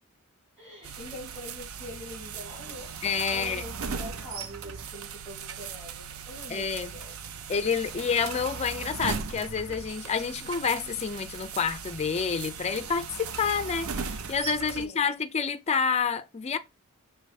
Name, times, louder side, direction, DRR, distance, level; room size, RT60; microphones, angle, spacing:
voice 1, 0.6-2.9 3.3-7.1 14.7-15.1, left 1 dB, 10° right, 2.5 m, -44 dB
sound 1, 0.8-14.9, right 5 dB, 75° right, 0.5 m, -38 dB
voice 2, 3.0-3.6 6.5-6.9 7.5-16.6, left 6 dB, 30° left, 0.4 m, -28 dB
5.5 x 3.0 x 3.2 m
head